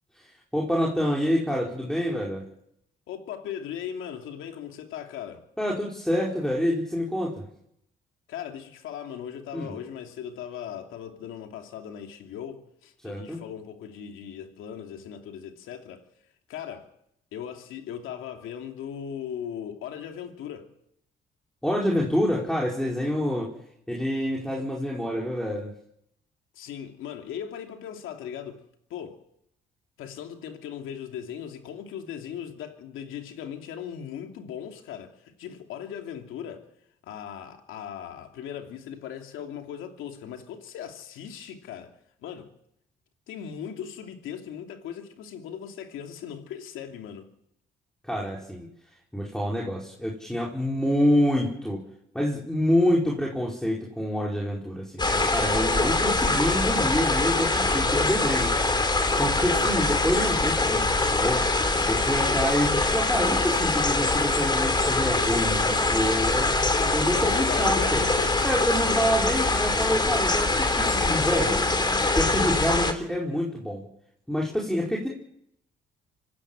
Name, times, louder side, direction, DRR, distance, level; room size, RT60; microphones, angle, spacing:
voice 1, 0.2-2.4 5.6-7.5 9.5-9.7 13.0-13.4 21.6-23.5 23.9-25.7 48.0-48.7 49.1-51.8 52.1-58.5 58.9-61.5 61.9-68.0 68.4-71.6 72.1-73.8 74.3-75.1, equal, 5° left, 5.0 m, -27 dB
voice 2, 3.1-5.4 8.3-16.0 16.5-16.9 17.3-20.7 26.5-28.6 28.9-29.2 30.0-36.6 37.0-41.9 42.2-42.5 43.3-47.3 67.1-68.4, left 9 dB, 90° left, 2.9 m, -38 dB
sound 1, 55.0-72.9, left 2 dB, 20° left, 3.2 m, -24 dB
26.0 x 16.0 x 7.6 m
cardioid pair, 90°, 20 cm